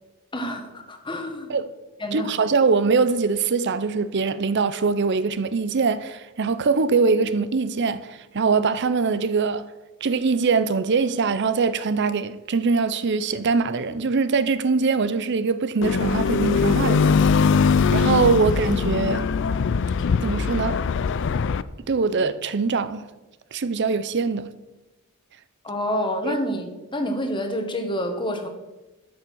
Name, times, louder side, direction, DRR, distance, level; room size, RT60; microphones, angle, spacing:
voice 1, 0.3-1.6 2.0-2.3 25.6-28.5, equal, 20° left, 1.5 m, -28 dB
voice 2, 2.1-9.7 10.0-17.5 17.9-19.3 20.2-20.8 21.9-23.0 23.5-24.5 26.2-26.3, right 4 dB, 55° right, 0.6 m, -22 dB
sound 1, 15.8-21.6, left 5 dB, 55° left, 0.4 m, -21 dB
12.0 x 6.8 x 6.2 m
head